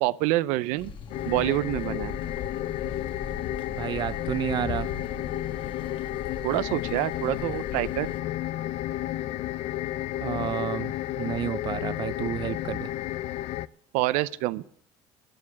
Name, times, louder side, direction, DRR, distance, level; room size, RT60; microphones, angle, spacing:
voice 1, 0.0-0.9 1.3-2.1 6.4-8.1 13.9-14.6, right 17 dB, 80° right, 0.6 m, -26 dB
sound 1, 0.8-8.2, left 5 dB, 40° left, 1.3 m, -40 dB
sound 2, 1.1-13.7, left 14 dB, 60° left, 0.5 m, -32 dB
voice 2, 3.7-4.9 10.2-10.9 11.2-12.9, right 11 dB, 35° right, 0.5 m, -30 dB
12.0 x 10.0 x 8.4 m
cardioid pair, 135°, 13 cm